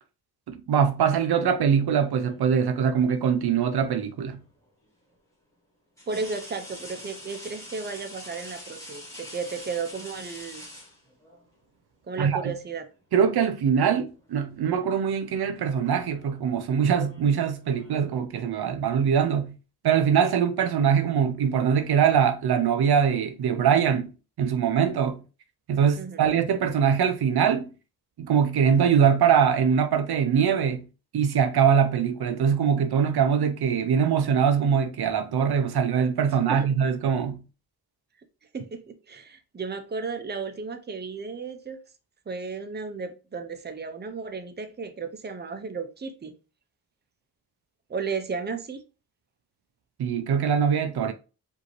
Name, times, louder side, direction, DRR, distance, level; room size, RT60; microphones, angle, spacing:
voice 1, 0.5-4.4 12.2-12.5 13.1-19.6 19.8-24.1 24.4-25.2 25.7-27.7 28.2-30.9 31.1-37.4 50.0-51.1, right 7 dB, 70° right, 0.6 m, -23 dB
sound 1, 1.7-2.5 4.3-4.4 6.0-11.4 12.6-12.8 13.2-14.0 14.3-14.6 15.5-18.1, left 1 dB, 5° left, 1.5 m, -45 dB
voice 2, 6.1-10.6 12.1-12.9 26.0-26.4 36.5-36.7 38.5-41.8 42.3-46.3 47.9-48.8, right 4 dB, 25° right, 0.7 m, -34 dB
5.0 x 2.7 x 3.1 m
wide cardioid pair, 95°, 40 cm